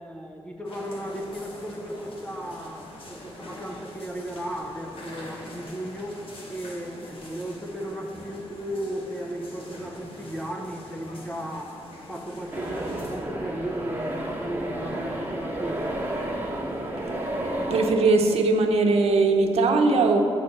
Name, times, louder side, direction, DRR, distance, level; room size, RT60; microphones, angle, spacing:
voice 1, 0.0-6.2 6.5-11.8 12.1-16.0, right 1 dB, 10° left, 1 dB, 0.7 m, -35 dB
sound 1, 0.6-13.2, left 1 dB, 60° left, 1.3 m, -44 dB
sound 2, 12.5-17.9, right 1 dB, 20° right, 1.1 m, -31 dB
voice 2, 17.7-20.2, right 3 dB, 80° right, 3 dB, 0.8 m, -20 dB
7.9 x 4.2 x 6.5 m, 2.7 s
wide cardioid pair, 135°, 10 cm